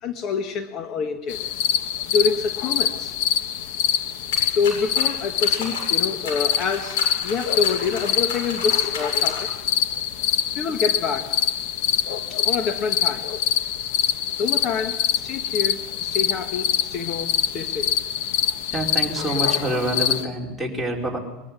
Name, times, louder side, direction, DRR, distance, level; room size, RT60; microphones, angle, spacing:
voice 1, 0.0-1.4 2.1-3.2 4.5-9.5 10.5-11.4 12.3-13.3 14.4-17.9, left 5 dB, 45° left, 7 dB, 1.5 m, -27 dB
sound 1, 1.3-20.2, left 9 dB, 70° left, 1.3 m, -25 dB
sound 2, 4.3-9.6, left 3 dB, 90° left, 8.0 m, -35 dB
voice 2, 18.4-21.2, right 1 dB, ahead, -3 dB, 4.8 m, -27 dB
23.0 x 14.0 x 9.8 m, 1.0 s
supercardioid pair, 125°, 0 cm